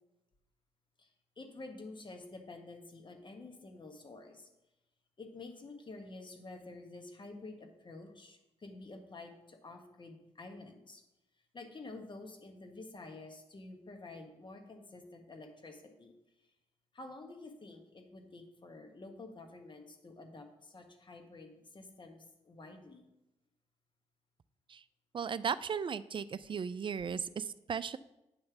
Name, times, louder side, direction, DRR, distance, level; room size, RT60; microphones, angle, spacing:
voice 1, 1.4-4.5 5.2-11.0 11.5-16.1 16.9-23.0, left 2 dB, 40° left, 4 dB, 1.4 m, -49 dB
voice 2, 25.1-28.0, right 6 dB, 40° right, 16 dB, 0.4 m, -36 dB
8.9 x 3.2 x 5.9 m, 0.93 s
supercardioid pair, 55°, 12 cm